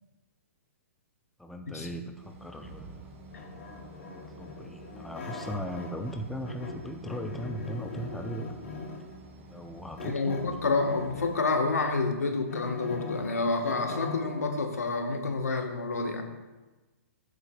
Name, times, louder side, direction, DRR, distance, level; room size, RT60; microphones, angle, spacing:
voice 1, 1.4-3.2 4.1-8.5 9.5-10.4, equal, ahead, 4 dB, 0.5 m, -38 dB
sound 1, 2.1-11.4, right 2 dB, 45° right, 2.4 m, -50 dB
sound 2, 3.3-6.2 6.4-9.1 10.0-11.5 12.0-14.5, left 4 dB, 60° left, 2.7 m, -41 dB
voice 2, 10.0-16.2, left 3 dB, 85° left, 4 dB, 1.3 m, -29 dB
14.5 x 8.2 x 2.3 m, 1.2 s
hypercardioid pair, 125°, 8 cm